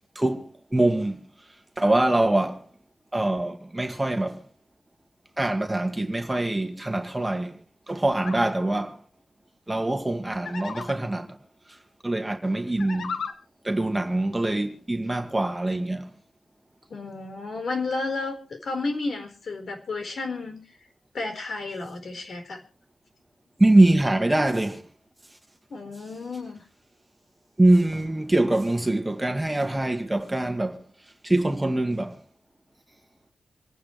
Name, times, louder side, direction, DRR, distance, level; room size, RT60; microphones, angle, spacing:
voice 1, 0.2-1.2 1.8-2.7 3.1-4.4 5.4-7.6 7.9-9.0 9.7-11.4 12.0-13.2 13.6-16.1 23.6-24.8 27.6-30.8 31.2-32.2, right 2 dB, 10° right, 1.8 m, -23 dB
sound 1, 8.2-8.5 10.4-11.0 12.7-13.3, left 5 dB, 80° left, 1.6 m, -34 dB
voice 2, 16.9-20.6 21.1-22.6 25.7-26.6, left 3 dB, 60° left, 4.5 m, -32 dB
27.0 x 9.5 x 3.3 m
wide cardioid pair, 115°, 0 cm